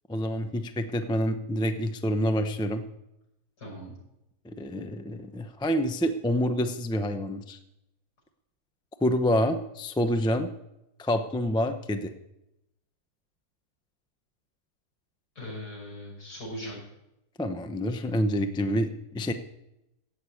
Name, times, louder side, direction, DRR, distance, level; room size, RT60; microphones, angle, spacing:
voice 1, 0.1-2.8 4.4-7.6 9.0-10.5 11.0-12.1 17.4-19.3, equal, 5° left, 7 dB, 0.3 m, -27 dB
voice 2, 3.6-3.9 15.3-16.8, equal, 70° left, -3 dB, 6.6 m, -39 dB
16.5 x 6.5 x 8.5 m, 0.88 s
omnidirectional pair, 1.8 m